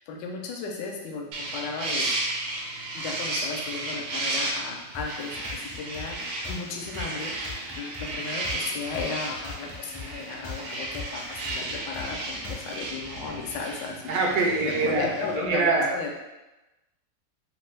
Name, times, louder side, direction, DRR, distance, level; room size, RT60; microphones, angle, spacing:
voice 1, 0.0-2.1 2.9-6.2 6.5-14.2 14.6-16.2, left 4 dB, 80° left, 1 dB, 1.2 m, -35 dB
sound 1, 1.3-15.4, right 2 dB, 85° right, 1.3 m, -34 dB
sound 2, 4.9-12.9, left 3 dB, 30° left, 0.6 m, -41 dB
voice 2, 14.1-15.1 15.5-15.9, right 3 dB, 70° right, -1 dB, 0.9 m, -24 dB
3.2 x 2.2 x 3.2 m, 1.0 s
omnidirectional pair, 1.9 m